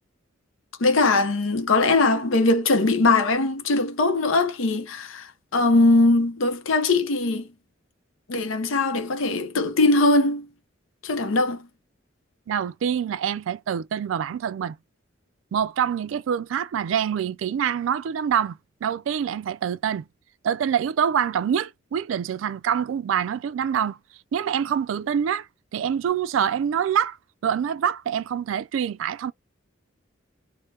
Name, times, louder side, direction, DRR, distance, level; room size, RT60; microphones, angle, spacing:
voice 1, 0.8-7.5 8.3-10.5 11.0-11.7, left 2 dB, 90° left, 0.7 m, -21 dB
voice 2, 12.5-14.8 15.5-20.1 20.4-24.0 24.3-25.5 25.7-27.2 27.4-29.3, right 8 dB, 80° right, 0.3 m, -25 dB
2.8 x 2.1 x 3.2 m
head